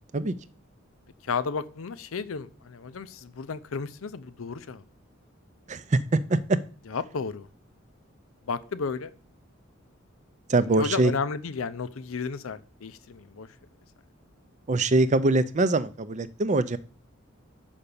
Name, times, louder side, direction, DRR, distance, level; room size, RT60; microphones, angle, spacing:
voice 1, 1.2-4.8 6.9-7.5 8.5-9.1 10.6-13.5, left 5 dB, 85° left, 14 dB, 0.6 m, -33 dB
voice 2, 5.7-6.4 10.5-11.1 14.7-16.8, right 2 dB, 35° right, 14 dB, 0.5 m, -23 dB
5.8 x 5.3 x 6.7 m, 0.39 s
head